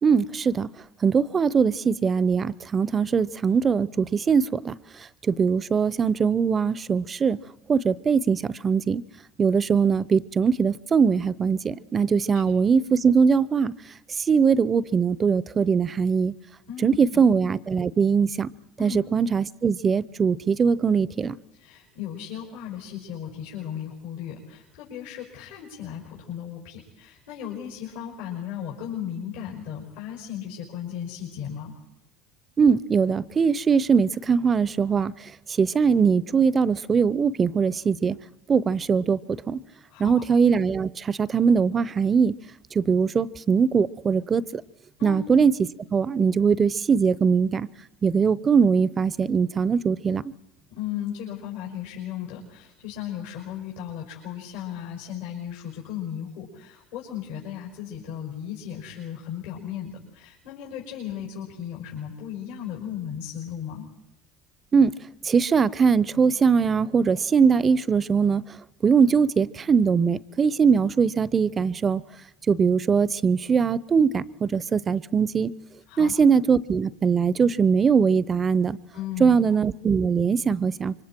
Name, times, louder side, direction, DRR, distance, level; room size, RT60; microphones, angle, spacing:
voice 1, 0.0-0.7 1.0-4.8 5.3-7.4 7.7-9.0 9.4-13.7 14.3-16.3 16.8-18.5 18.8-21.4 32.6-35.1 35.6-38.2 38.5-39.6 40.0-42.3 42.7-44.6 45.0-45.5 45.9-47.7 48.0-50.2 64.7-64.9 65.2-68.4 68.8-72.0 72.5-75.5 76.0-78.8 79.2-80.9, right 6 dB, 30° right, 0.7 m, -21 dB
voice 2, 16.7-17.2 18.8-19.0 21.5-31.7 39.9-40.2 45.0-45.2 50.7-63.9 75.9-76.1 78.9-79.4, left 9 dB, 80° left, 5.3 m, -36 dB
27.0 x 24.0 x 4.6 m
hypercardioid pair, 75°, 0 cm